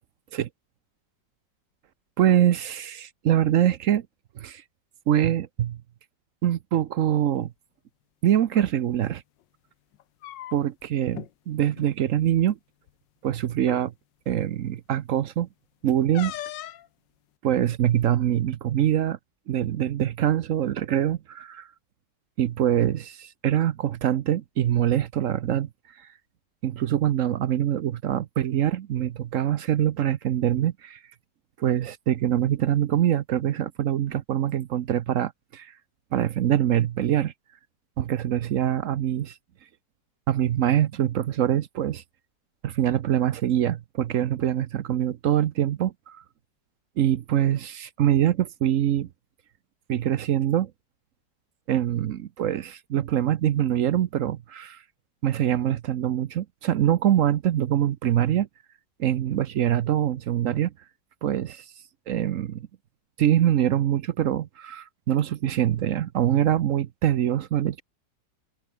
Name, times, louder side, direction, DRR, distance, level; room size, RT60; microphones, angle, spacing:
voice 1, 2.2-4.1 4.4-4.6 5.1-5.8 6.4-7.5 8.2-9.2 10.5-12.6 13.2-13.9 14.3-15.5 15.8-16.3 17.4-19.2 19.5-21.7 22.4-25.7 26.6-31.0 31.6-35.7 36.1-37.3 38.0-39.3 40.3-42.0 42.6-46.2 47.0-49.1 49.9-50.7 51.7-54.8 55.2-58.5 59.0-60.7 61.2-61.6 62.1-62.6 63.2-67.8, right 11 dB, 60° right, 0.8 m, -24 dB
sound 1, 8.4-8.7 9.9-10.8 11.1-11.3 11.7-11.9 12.9-13.0 13.6-13.9 16.1-16.9, left 13 dB, 80° left, 1.5 m, -38 dB
open air
omnidirectional pair, 2.0 m